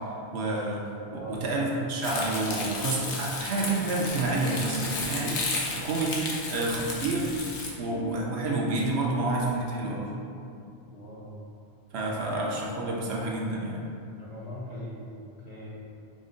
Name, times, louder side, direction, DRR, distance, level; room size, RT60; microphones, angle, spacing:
voice 1, 0.3-0.8 1.1-5.4 5.7-6.2 6.5-7.4 7.8-10.1 11.9-13.8, right 2 dB, 70° right, -3 dB, 0.8 m, -29 dB
voice 2, 1.1-1.4 10.9-11.4 12.0-12.2 14.2-15.0 15.4-15.8, equal, 40° left, -7 dB, 0.8 m, -40 dB
Crumpling crinkling, 2.0-7.7, left 3 dB, 80° left, 1.0 m, -34 dB
5.2 x 2.1 x 3.7 m, 2.6 s
omnidirectional pair, 1.2 m